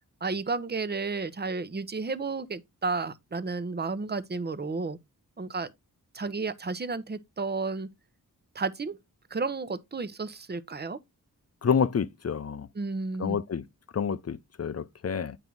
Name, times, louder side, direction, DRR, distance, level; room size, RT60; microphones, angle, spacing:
voice 1, 0.2-5.0 5.4-5.7 6.1-7.9 8.5-9.0 9.3-11.0 12.7-13.4, right 4 dB, 30° right, 0.9 m, -32 dB
voice 2, 11.6-12.7 13.2-13.6 13.9-15.4, left 6 dB, 45° left, 0.6 m, -28 dB
9.0 x 4.5 x 4.0 m
wide cardioid pair, 80°, 34 cm